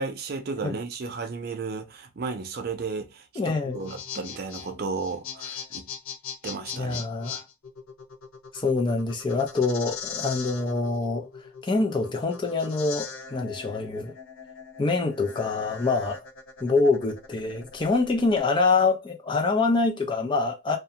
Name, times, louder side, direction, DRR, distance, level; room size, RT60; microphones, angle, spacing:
voice 1, 0.0-5.9 6.4-7.0, right 4 dB, 50° right, 0.4 m, -33 dB
voice 2, 3.4-3.8 6.7-7.4 8.5-14.1 14.8-16.2 16.6-20.8, left 3 dB, 25° left, 0.4 m, -25 dB
sound 1, 3.6-18.4, left 7 dB, 85° left, 0.5 m, -40 dB
2.4 x 2.1 x 2.8 m
head